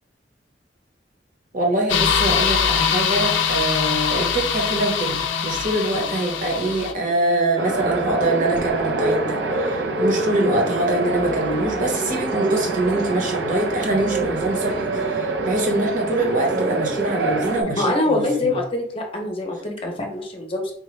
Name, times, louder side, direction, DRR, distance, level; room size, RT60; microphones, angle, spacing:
voice 1, 1.5-18.5, right 1 dB, 45° right, 0 dB, 1.0 m, -24 dB
sound 1, 1.9-6.9, left 7 dB, 90° left, 0.4 m, -22 dB
sound 2, 7.6-17.6, right 2 dB, 70° right, 0.6 m, -25 dB
voice 2, 17.8-20.7, left 2 dB, 30° left, 2 dB, 0.7 m, -24 dB
3.8 x 2.2 x 3.1 m, 0.62 s
head